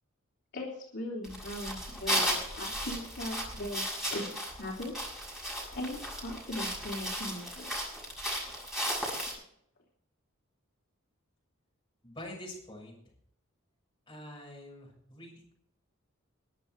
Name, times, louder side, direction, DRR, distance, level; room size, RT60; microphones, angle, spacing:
voice 1, 0.5-4.9 5.7-7.7, left 1 dB, 55° left, -3 dB, 3.2 m, -39 dB
sound 1, 1.2-9.3, equal, ahead, 7.0 m, -35 dB
voice 2, 12.0-13.0 14.1-15.5, left 1 dB, 20° left, -2 dB, 6.6 m, -46 dB
22.0 x 8.3 x 4.7 m, 0.69 s
head